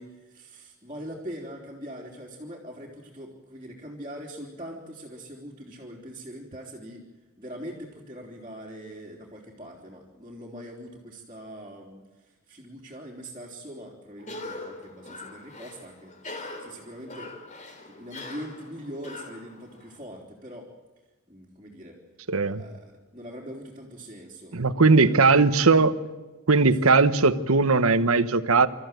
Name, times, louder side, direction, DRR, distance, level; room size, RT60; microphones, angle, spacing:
voice 1, 0.0-7.0 7.4-17.3 17.9-20.7 21.3-22.0 22.4-24.6 24.9-25.9 26.8-26.9, equal, 25° right, -4 dB, 3.5 m, -42 dB
Cough, 14.2-20.0, left 2 dB, 35° left, 3.1 m, -42 dB
voice 2, 22.3-22.6 24.5-26.0 26.5-28.7, right 4 dB, 75° right, 12 dB, 1.1 m, -19 dB
27.5 x 14.0 x 9.1 m, 1.2 s
head